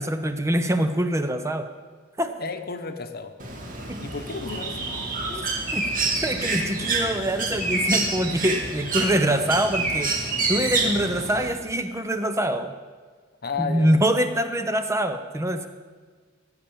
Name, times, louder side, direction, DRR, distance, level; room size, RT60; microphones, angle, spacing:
voice 1, 0.0-1.7 2.2-2.3 3.9-4.0 5.3-10.1 10.5-12.7 13.6-15.7, right 1 dB, 15° right, 8 dB, 0.8 m, -24 dB
voice 2, 2.4-3.3 4.0-4.9 13.4-13.9, left 5 dB, 55° left, 8 dB, 1.1 m, -32 dB
Bird, 3.4-11.5, right 3 dB, 45° right, 2.3 m, -27 dB
16.0 x 8.7 x 7.1 m, 1.5 s
head